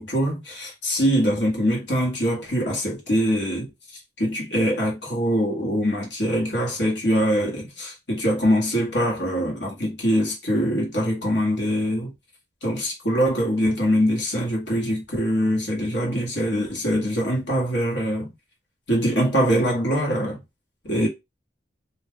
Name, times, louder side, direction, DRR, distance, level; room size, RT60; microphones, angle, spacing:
voice 1, 0.0-3.7 4.2-12.1 12.6-18.3 18.9-20.4 20.8-21.1, equal, 75° left, 1.3 m, -23 dB
2.5 x 2.3 x 3.5 m
head